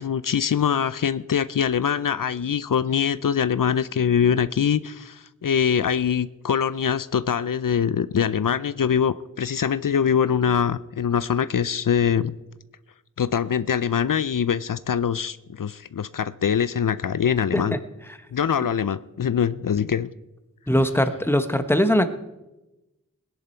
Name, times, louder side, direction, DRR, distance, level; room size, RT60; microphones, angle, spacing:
voice 1, 0.0-12.3 13.2-17.7 18.3-20.1, left 7 dB, 75° left, 15 dB, 0.5 m, -23 dB
voice 2, 20.7-22.1, equal, 5° left, 9 dB, 1.1 m, -21 dB
19.5 x 10.5 x 4.5 m, 0.99 s
wide cardioid pair, 50°, 32 cm